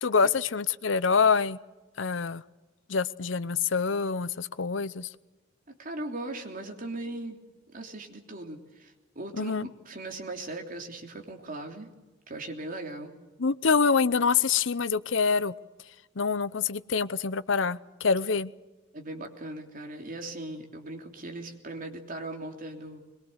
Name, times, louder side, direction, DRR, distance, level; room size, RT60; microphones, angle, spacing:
voice 1, 0.0-1.6 2.0-2.4 2.9-5.1 9.4-9.7 13.4-15.5 16.2-18.5, left 5 dB, 75° left, 16 dB, 0.8 m, -26 dB
voice 2, 5.7-7.4 7.7-11.9 12.3-13.1 18.9-23.0, right 2 dB, 45° right, 3 dB, 3.3 m, -39 dB
22.5 x 22.0 x 8.0 m, 1.2 s
head